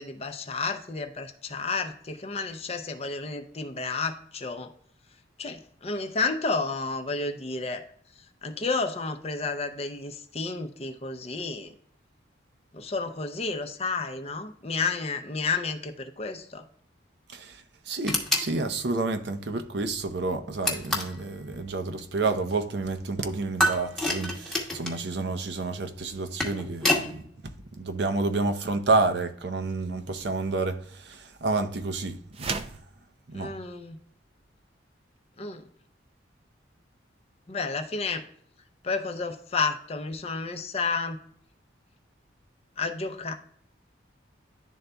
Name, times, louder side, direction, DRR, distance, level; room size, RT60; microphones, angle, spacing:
voice 1, 0.0-4.7 5.4-7.8 8.2-11.7 12.7-16.6 33.3-34.0 35.4-35.6 37.5-38.3 38.8-41.3 42.8-43.3, left 4 dB, 35° left, 0.6 m, -31 dB
voice 2, 17.9-27.2 27.7-30.8 31.0-32.6 33.3-33.5, right 3 dB, 60° right, 0.7 m, -29 dB
sound 1, 18.1-18.5 20.6-21.2 23.6-25.0 26.1-27.1, left 1 dB, ahead, 1.0 m, -27 dB
sound 2, 32.3-32.9, right 4 dB, 30° right, 0.4 m, -32 dB
11.0 x 3.9 x 2.2 m
head